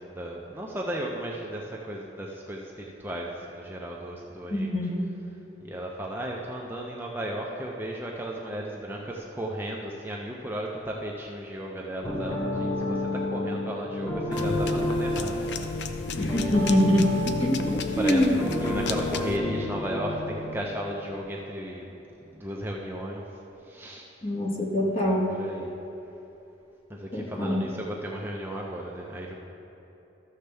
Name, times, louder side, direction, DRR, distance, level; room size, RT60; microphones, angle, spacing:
voice 1, 0.0-4.7 5.6-15.7 16.2-16.6 17.7-23.2 23.6-24.1 24.7-25.7 26.9-29.3, right 1 dB, 10° right, -2 dB, 0.5 m, -35 dB
voice 2, 4.5-5.1 16.2-18.3 24.2-25.3 27.1-27.6, equal, 35° left, -1 dB, 1.0 m, -24 dB
sound 1, 12.0-20.5, left 1 dB, 15° left, 1.1 m, -30 dB
sound 2, 14.3-19.4, left 4 dB, 60° left, 0.5 m, -35 dB
13.5 x 6.4 x 3.4 m, 3.0 s
head